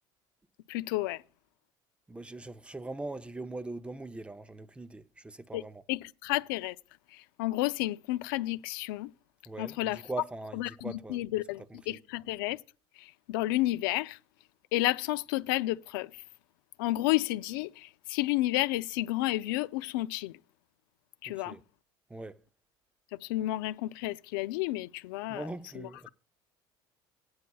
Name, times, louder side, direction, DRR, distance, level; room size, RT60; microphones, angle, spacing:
voice 1, 0.7-1.2 5.5-5.6 5.9-6.8 7.4-9.1 9.6-10.0 10.5-12.6 13.3-14.2 14.7-16.1 16.8-20.3 21.2-21.6 23.2-25.5 25.8-26.1, left 17 dB, 85° left, 0.4 m, -31 dB
voice 2, 2.1-5.8 9.5-11.2 11.7-12.0 21.3-21.6 22.1-22.4 25.3-26.1, right 2 dB, 10° right, 0.6 m, -41 dB
16.0 x 9.5 x 2.3 m
supercardioid pair, 95°, 11 cm